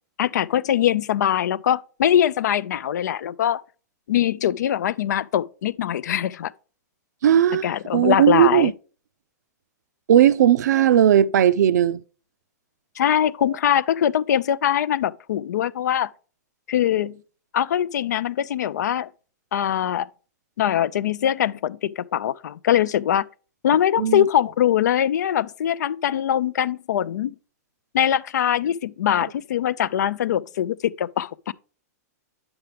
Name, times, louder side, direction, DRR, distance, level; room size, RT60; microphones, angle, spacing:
voice 1, 0.2-3.6 4.1-6.5 7.6-8.7 13.0-16.1 16.7-17.2 17.5-19.1 19.5-20.1 20.6-23.3 23.6-27.3 27.9-31.5, left 10 dB, 80° left, 0.3 m, -22 dB
voice 2, 7.2-8.7 10.1-12.0 24.0-24.2, right 10 dB, 80° right, 0.4 m, -17 dB
8.8 x 5.8 x 3.3 m
hypercardioid pair, 140°, 9 cm